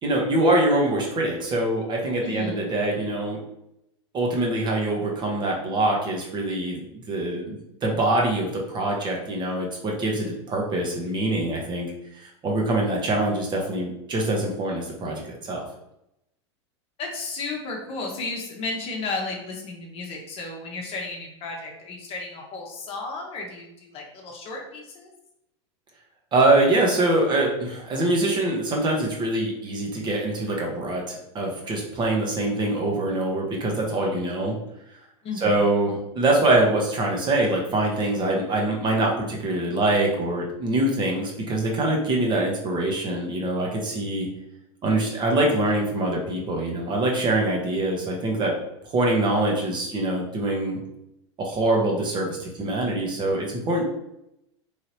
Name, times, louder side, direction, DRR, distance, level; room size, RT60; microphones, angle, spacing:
voice 1, 0.0-3.4 4.1-7.6 7.8-11.9 12.1-15.6 26.3-34.6 35.4-44.3 44.8-48.6 48.9-50.8 51.4-53.8, right 2 dB, 30° right, -1 dB, 0.9 m, -24 dB
voice 2, 2.2-2.6 17.0-25.1 35.2-35.6, left 3 dB, 40° left, 0 dB, 0.9 m, -33 dB
3.2 x 2.8 x 2.8 m, 0.83 s
hypercardioid pair, 110°, 15 cm